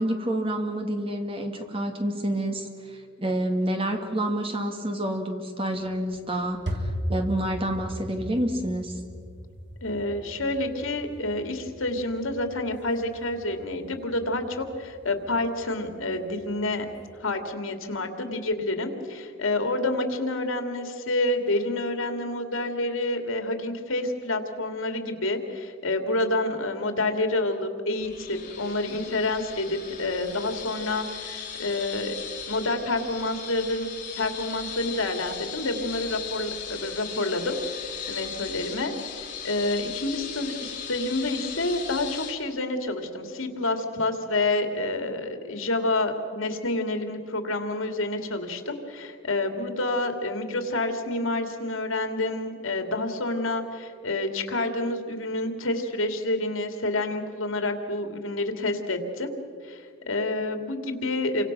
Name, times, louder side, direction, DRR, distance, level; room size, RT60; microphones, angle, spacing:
voice 1, 0.0-8.9, right 1 dB, 25° right, 4 dB, 2.1 m, -28 dB
sound 1, 5.8-17.1, equal, 55° right, 3.0 m, -39 dB
voice 2, 9.8-16.9 17.2-32.1 32.5-33.9 34.2-37.6 38.1-59.3 59.6-61.5, left 2 dB, 80° left, 6 dB, 2.6 m, -28 dB
sound 2, 28.0-42.3, left 7 dB, 40° left, 3.4 m, -38 dB
29.0 x 25.0 x 6.1 m, 2.2 s
head